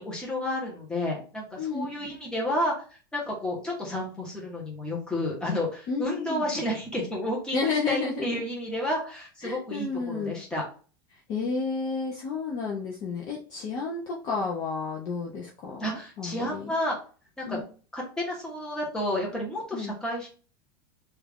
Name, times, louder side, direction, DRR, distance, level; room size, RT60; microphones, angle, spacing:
voice 1, 0.0-2.7 3.1-10.6 15.8-17.0 17.4-17.6 17.9-20.3, left 1 dB, 5° left, -3 dB, 1.0 m, -31 dB
voice 2, 1.6-2.1 5.9-6.5 7.5-8.3 9.4-10.4 11.3-16.8 17.4-17.6 19.7-19.9, left 4 dB, 30° left, -1 dB, 0.6 m, -31 dB
3.2 x 2.4 x 3.4 m, 0.38 s
supercardioid pair, 165°, 12 cm